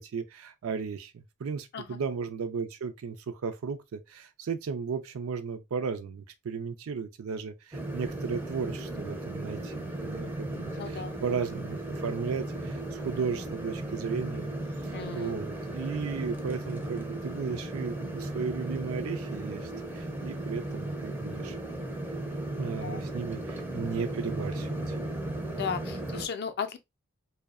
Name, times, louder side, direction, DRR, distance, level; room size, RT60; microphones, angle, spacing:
voice 1, 0.0-14.5 15.1-21.6 22.6-25.0, right 5 dB, 75° right, 0.4 m, -35 dB
sound 1, 7.7-26.3, right 1 dB, 10° right, 0.4 m, -36 dB
voice 2, 10.7-11.2 14.9-15.3 22.8-23.0 25.5-26.8, left 6 dB, 50° left, 0.4 m, -35 dB
2.6 x 2.1 x 2.3 m
head